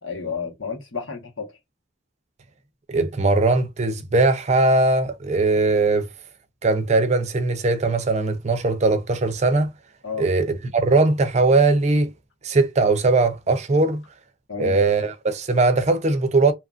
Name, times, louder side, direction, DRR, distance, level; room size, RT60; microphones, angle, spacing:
voice 1, 0.0-1.6 10.0-10.3 14.5-14.8, left 5 dB, 85° left, 1.2 m, -31 dB
voice 2, 2.9-6.1 6.6-9.7 10.2-12.1 12.4-14.0 14.6-16.5, right 3 dB, 35° right, 0.5 m, -20 dB
2.8 x 2.4 x 2.3 m
head